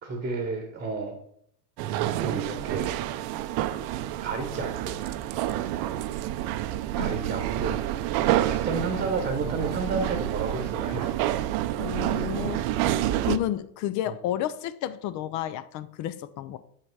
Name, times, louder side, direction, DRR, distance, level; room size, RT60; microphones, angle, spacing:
voice 1, 0.0-1.2 2.2-2.9 4.2-5.0 7.0-7.8 8.5-11.1 14.1-14.2, right 3 dB, 20° right, 5 dB, 1.0 m, -31 dB
sound 1, 1.8-13.4, right 13 dB, 50° right, 0.6 m, -28 dB
voice 2, 11.8-12.9 13.2-16.6, left 12 dB, 40° left, 13 dB, 0.4 m, -31 dB
7.2 x 5.7 x 4.6 m, 0.69 s
supercardioid pair, 125°, 50 cm